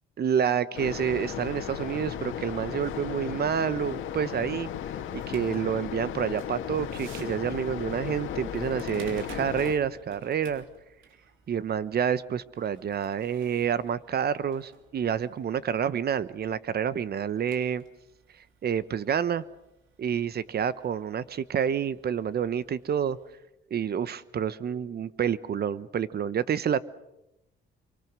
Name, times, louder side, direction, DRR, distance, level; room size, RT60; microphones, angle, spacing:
voice 1, 0.2-4.7 5.3-10.6 11.5-17.8 18.6-19.4 20.0-23.2 23.7-26.8, right 8 dB, 55° right, 16 dB, 1.1 m, -28 dB
sound 1, 0.7-9.7, left 9 dB, 80° left, 1.9 m, -35 dB
sound 2, 4.1-23.4, right 5 dB, 85° right, 3.6 m, -55 dB
25.5 x 24.0 x 6.2 m, 0.91 s
cardioid pair, 90°, 20 cm